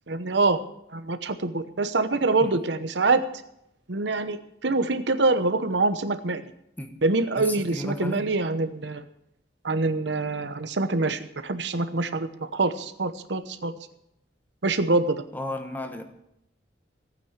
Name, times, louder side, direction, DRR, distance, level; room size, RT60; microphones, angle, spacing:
voice 1, 0.1-0.6 0.9-3.3 3.9-6.5 7.0-9.1 9.6-13.7 14.6-15.2, right 3 dB, 75° right, 10 dB, 1.0 m, -25 dB
voice 2, 7.4-8.2 15.3-16.0, left 1 dB, 10° left, 6 dB, 1.3 m, -33 dB
15.5 x 9.2 x 7.3 m, 0.79 s
head